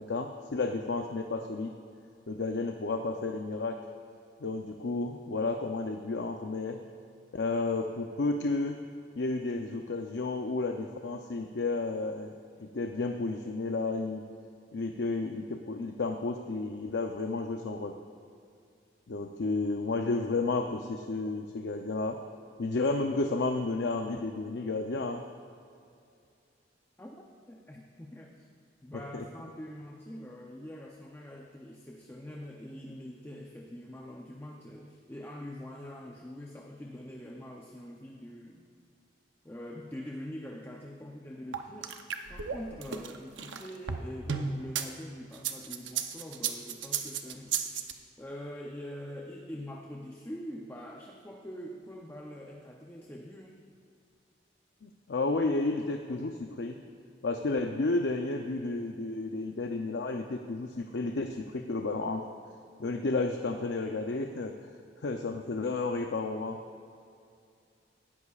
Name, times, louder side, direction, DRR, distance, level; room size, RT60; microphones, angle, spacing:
voice 1, 0.0-1.7 2.3-3.8 4.4-6.8 7.3-8.8 9.2-12.3 12.6-14.2 14.7-18.0 19.1-22.2 22.6-25.2 28.9-29.2 54.8-56.8 57.2-62.2 62.8-64.5 65.0-66.6, left 3 dB, 70° left, 4 dB, 0.6 m, -32 dB
voice 2, 27.0-28.5 28.8-38.7 39.4-42.0 42.3-47.9 48.2-53.7, equal, 10° left, 0 dB, 0.6 m, -44 dB
sound 1, 41.5-44.9 45.3-47.9, right 7 dB, 90° right, 0.8 m, -34 dB
18.0 x 13.5 x 2.4 m, 2.5 s
head